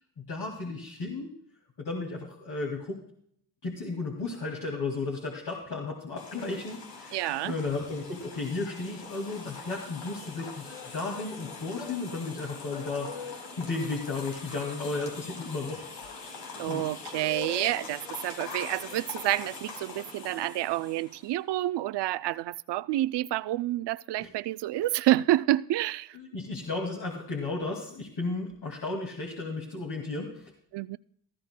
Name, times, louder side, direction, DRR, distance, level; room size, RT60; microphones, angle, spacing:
voice 1, 0.2-1.3 1.8-3.0 3.6-15.9 16.7-16.9 24.2-24.3 26.1-30.5, left 3 dB, 60° left, 2.3 m, -34 dB
sound 1, 6.2-21.3, left 4 dB, 90° left, 2.5 m, -42 dB
voice 2, 7.1-7.5 16.6-26.2 30.7-31.0, right 15 dB, 70° right, 0.5 m, -29 dB
17.5 x 14.0 x 2.2 m
cardioid pair, 65°, 43 cm